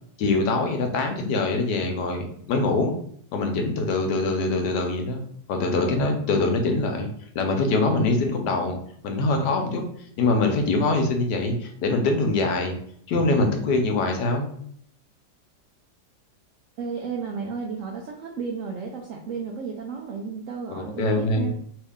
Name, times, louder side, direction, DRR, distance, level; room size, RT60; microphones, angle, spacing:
voice 1, 0.2-2.9 3.3-5.2 5.5-7.1 7.3-8.8 9.0-9.8 10.2-12.7 13.1-14.5 20.7-21.5, left 3 dB, 75° left, 4 dB, 1.2 m, -23 dB
voice 2, 16.8-21.5, right 5 dB, 75° right, 0 dB, 0.7 m, -33 dB
3.1 x 2.7 x 3.5 m, 0.65 s
omnidirectional pair, 1.9 m